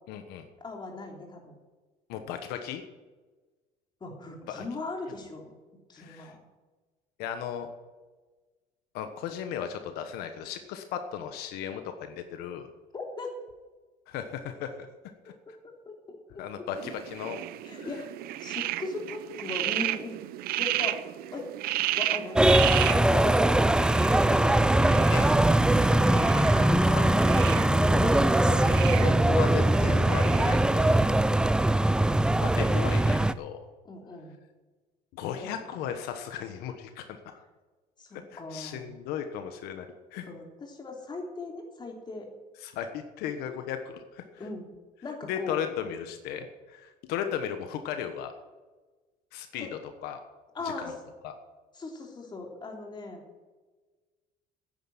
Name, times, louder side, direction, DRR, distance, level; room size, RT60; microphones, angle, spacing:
voice 1, 0.1-0.5 2.1-2.8 4.5-4.6 6.0-6.3 7.2-7.7 8.9-12.7 14.1-14.7 15.2-15.3 16.4-17.4 17.8-17.9 25.1-25.3 25.7-31.1 32.4-33.6 35.1-37.4 38.3-40.3 42.6-44.4 45.3-48.3 49.3-50.2 50.6-50.9 51.2-51.3, left 9 dB, 85° left, 7 dB, 1.3 m, -36 dB
voice 2, 0.6-1.5 4.0-5.5 5.9-6.4 12.9-13.3 15.5-16.7 17.6-18.1 18.4-20.1 20.6-21.0 21.3-21.5 21.9-22.5 22.8-25.0 33.8-34.3 35.4-35.5 38.0-39.0 40.2-42.3 44.4-44.7 45.0-45.6 49.6-49.7 50.5-50.9 51.7-53.2, left 3 dB, 30° left, 2 dB, 3.3 m, -38 dB
sound 1, 16.8-30.7, right 14 dB, 75° right, 0.7 m, -34 dB
sound 2, 22.4-33.3, right 1 dB, 5° right, 0.4 m, -21 dB
10.5 x 9.3 x 9.0 m, 1.3 s
cardioid pair, 120°, 16 cm